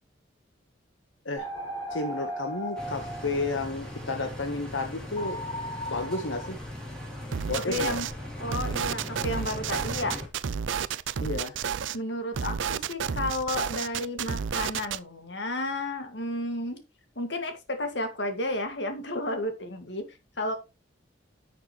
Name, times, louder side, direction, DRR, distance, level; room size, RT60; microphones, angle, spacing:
sound 1, 1.4-4.0 5.2-6.5, right 1 dB, 25° left, 3.9 m, -37 dB
voice 1, 1.9-5.4 5.9-6.6 7.5-8.0 11.2-11.6, left 3 dB, 90° left, 1.2 m, -31 dB
sound 2, 2.8-10.3, left 1 dB, 5° left, 3.2 m, -39 dB
sound 3, 7.3-8.1 8.5-12.0 12.3-15.0, right 7 dB, 80° right, 0.5 m, -31 dB
voice 2, 7.7-8.1 8.4-10.2 11.9-16.8 17.2-20.5, left 1 dB, 65° left, 2.0 m, -32 dB
10.5 x 6.6 x 3.1 m
head